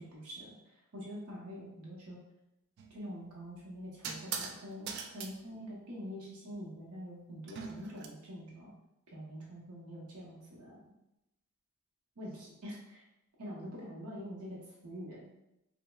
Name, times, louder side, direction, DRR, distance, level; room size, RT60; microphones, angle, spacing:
voice 1, 0.0-2.2 2.9-8.7 9.1-10.8 12.2-13.0 13.4-15.3, equal, 90° right, -5 dB, 0.8 m, -45 dB
sound 1, 2.8-3.0 4.0-4.6 4.9-5.3 7.5-8.1, right 6 dB, 50° right, 0.3 m, -40 dB
5.0 x 2.1 x 2.2 m, 0.89 s
head